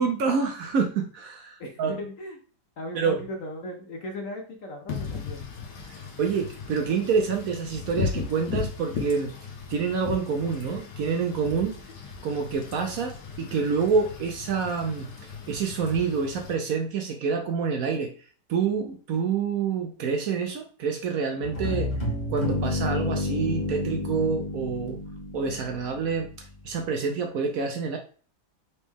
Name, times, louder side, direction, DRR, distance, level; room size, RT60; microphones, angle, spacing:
voice 1, 0.0-2.0 2.9-3.2 5.9-9.3 9.7-11.8 12.2-15.1 15.5-18.1 18.5-21.9 22.3-25.0 25.3-28.0, right 5 dB, 65° right, 3 dB, 0.9 m, -27 dB
voice 2, 1.6-2.4 2.8-5.4, left 1 dB, 55° left, 2 dB, 1.1 m, -37 dB
Wind / Rain, 4.9-16.5, left 5 dB, 85° left, 1.6 m, -37 dB
sound 1, 21.4-26.3, left 2 dB, 35° left, 0.8 m, -30 dB
4.1 x 3.1 x 3.4 m, 0.41 s
omnidirectional pair, 1.8 m